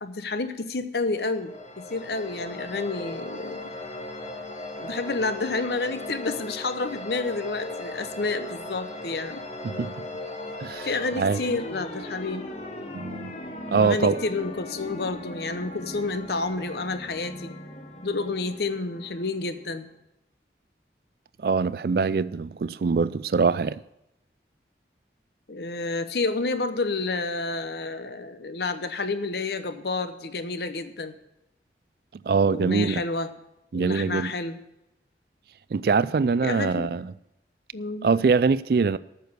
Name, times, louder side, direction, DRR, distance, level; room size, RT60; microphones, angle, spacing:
voice 1, 0.0-3.6 4.8-9.4 10.8-12.5 13.7-17.5 18.0-19.9 25.5-31.1 32.5-33.3 33.7-34.6 36.4-36.9 37.7-38.1, left 3 dB, 65° left, 0.8 m, -30 dB
sound 1, 1.2-19.8, left 1 dB, 35° left, 1.1 m, -38 dB
voice 2, 9.6-10.1 10.6-10.9 11.2-11.4 12.9-13.3 13.7-14.2 21.4-23.8 32.3-33.0 33.7-34.3 35.7-37.1 38.0-39.0, right 5 dB, 55° right, 0.3 m, -23 dB
9.1 x 6.9 x 8.0 m
head